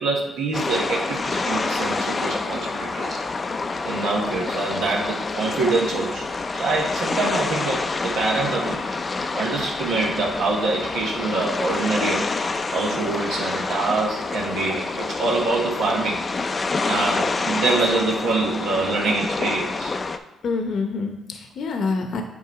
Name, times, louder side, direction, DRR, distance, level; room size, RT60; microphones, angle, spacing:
voice 1, 0.0-3.2 3.9-8.9 9.3-12.3 12.7-16.2 16.9-19.9, right 3 dB, 80° right, -2 dB, 1.3 m, -25 dB
sound 1, 0.5-20.2, left 3 dB, 30° left, 0.4 m, -27 dB
voice 2, 20.4-22.2, left 4 dB, 60° left, 5 dB, 0.8 m, -26 dB
8.5 x 2.9 x 4.7 m, 1.0 s
cardioid pair, 90°, 0 cm